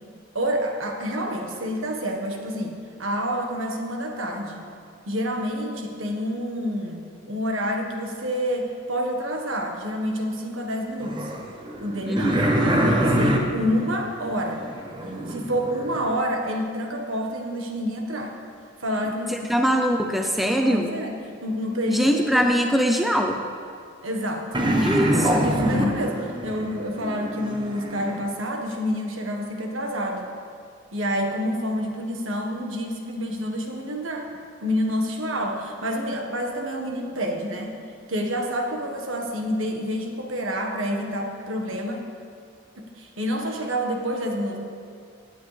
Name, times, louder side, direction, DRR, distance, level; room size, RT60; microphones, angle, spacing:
voice 1, 0.3-4.6 5.0-11.3 11.8-14.6 15.3-18.3 18.8-19.6 20.4-22.2 22.5-22.6 24.0-24.5 25.4-30.3 30.9-34.3 34.6-37.8 38.1-42.0 42.8-44.6, equal, 70° right, 2 dB, 1.5 m, -28 dB
sound 1, 11.0-16.1 24.5-28.2, equal, 20° right, 0.9 m, -25 dB
voice 2, 12.1-12.5 19.3-20.9 21.9-23.4 24.8-25.5, equal, ahead, 3 dB, 0.5 m, -22 dB
16.5 x 9.9 x 3.4 m, 2.5 s
head